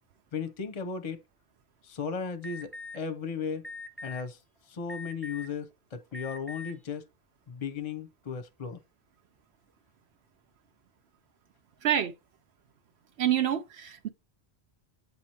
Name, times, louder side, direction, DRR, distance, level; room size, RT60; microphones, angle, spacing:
voice 1, 0.3-1.2 1.8-3.7 4.0-4.4 4.7-7.1 7.5-8.8, left 6 dB, 40° left, 0.7 m, -36 dB
Alarm, 2.4-3.0 3.6-4.2 4.9-5.5 6.1-6.7, left 3 dB, ahead, 0.6 m, -41 dB
voice 2, 13.2-14.1, right 10 dB, 80° right, 0.9 m, -27 dB
8.3 x 3.0 x 4.3 m
omnidirectional pair, 1.1 m